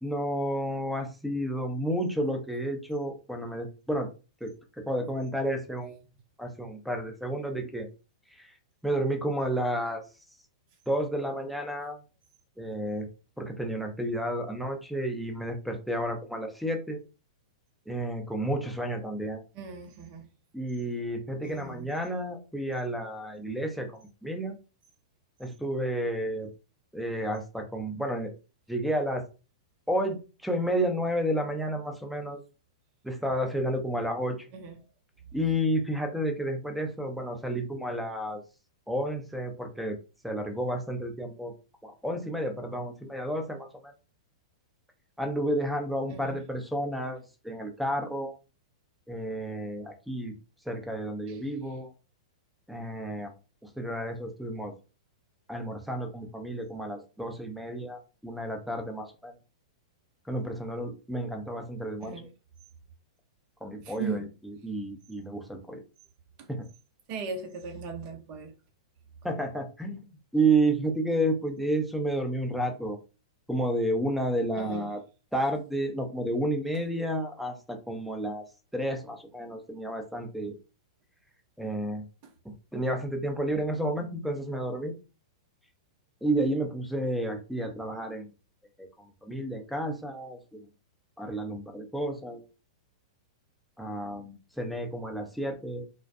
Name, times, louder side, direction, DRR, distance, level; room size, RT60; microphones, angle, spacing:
voice 1, 0.0-4.1 4.4-4.5 4.8-5.9 6.4-7.9 8.4-8.5 8.8-10.0 10.9-12.0 12.6-13.1 13.4-17.0 17.9-19.4 20.5-24.5 25.4-26.5 26.9-28.3 28.7-29.2 29.9-32.4 33.0-34.4 35.3-38.4 38.9-40.0 40.2-41.5 41.8-43.7 45.2-48.3 49.1-50.3 50.7-51.9 52.7-53.3 53.8-54.7 55.5-59.3 60.3-62.2 63.6-65.8 66.5-66.7 69.2-70.0 70.3-73.0 73.5-75.0 75.3-78.4 78.7-80.6 81.6-82.0 82.7-85.0 86.2-88.2 88.8-88.9 89.2-90.6 91.2-92.4 93.8-95.9, right 1 dB, ahead, 0.6 m, -31 dB
voice 2, 19.5-20.3 21.4-21.9 34.5-34.8 46.1-46.4 51.3-51.4 62.0-62.2 63.8-64.3 66.4-66.5 67.1-68.5 74.6-74.9, right 4 dB, 40° right, 0.7 m, -38 dB
2.3 x 2.1 x 2.6 m
hypercardioid pair, 110°, 3 cm